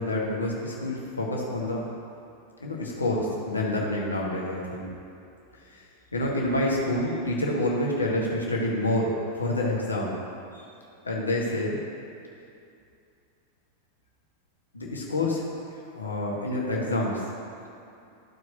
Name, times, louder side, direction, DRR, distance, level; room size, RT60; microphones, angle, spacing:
voice 1, 0.0-1.8 2.6-4.9 5.7-5.8 6.1-10.2 10.5-10.6 11.0-11.8 14.7-15.4 15.9-17.3, left 1 dB, 80° left, -3 dB, 1.4 m, -28 dB
13.5 x 4.6 x 2.8 m, 2.6 s
figure-of-eight pair, 90°, 0 cm